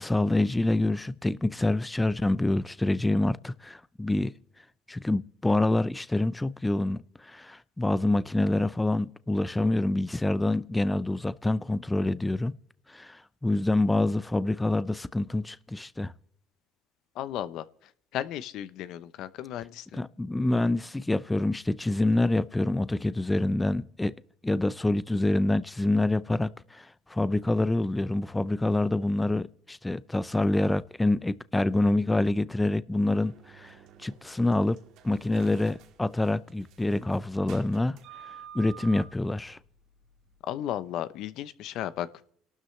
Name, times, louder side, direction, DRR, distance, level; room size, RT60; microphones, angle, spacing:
voice 1, 0.0-4.3 4.9-12.6 12.9-16.1 19.9-24.1 24.4-34.8 35.0-38.0 38.5-39.6, left 2 dB, 10° left, 0.5 m, -26 dB
voice 2, 17.2-17.6 18.1-20.0 40.5-42.1, left 11 dB, 70° left, 0.7 m, -34 dB
sound 1, 33.0-40.4, right 8 dB, 70° right, 2.0 m, -50 dB
29.5 x 12.5 x 3.2 m
supercardioid pair, 90°, 0 cm